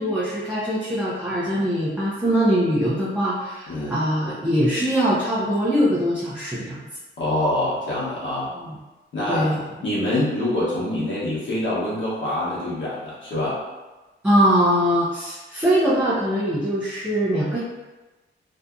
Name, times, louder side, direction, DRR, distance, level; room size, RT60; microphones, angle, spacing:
voice 1, 0.0-6.9 8.5-8.8 9.3-9.6 14.2-17.6, equal, 5° right, -9 dB, 0.5 m, -22 dB
voice 2, 3.7-4.0 7.2-8.5 9.1-9.5 9.8-13.6, left 1 dB, 65° left, -8 dB, 1.0 m, -25 dB
2.7 x 2.5 x 2.2 m, 1.2 s
cardioid pair, 115°, 21 cm